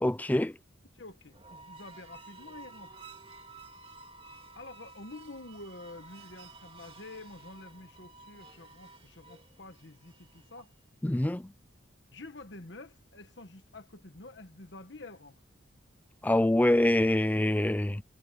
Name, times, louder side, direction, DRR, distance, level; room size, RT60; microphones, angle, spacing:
voice 1, 0.0-0.5 11.0-11.4 16.2-18.0, left 1 dB, 10° left, 0.3 m, -25 dB
voice 2, 0.9-3.0 4.6-10.7 12.1-15.4, left 2 dB, 60° left, 1.4 m, -48 dB
sound 1, 1.2-10.6, right 3 dB, 30° right, 2.2 m, -52 dB
head